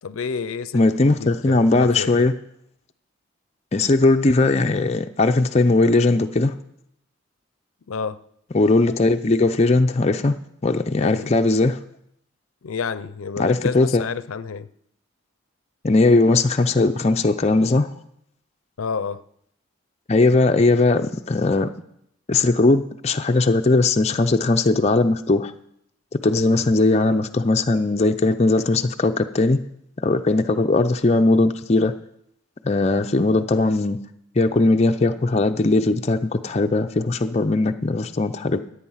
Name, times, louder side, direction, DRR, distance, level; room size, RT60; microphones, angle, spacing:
voice 1, 0.0-2.2 7.9-8.3 11.0-11.4 12.6-14.7 18.8-19.2 26.4-26.7, left 5 dB, 90° left, 0.5 m, -30 dB
voice 2, 0.7-2.3 3.7-6.5 8.5-10.4 10.6-11.8 13.4-14.0 15.8-17.9 20.1-21.7 22.3-25.5 26.1-29.6 30.0-31.9 32.6-34.0 34.4-38.6, left 2 dB, 30° left, 0.5 m, -19 dB
14.5 x 8.5 x 5.7 m
head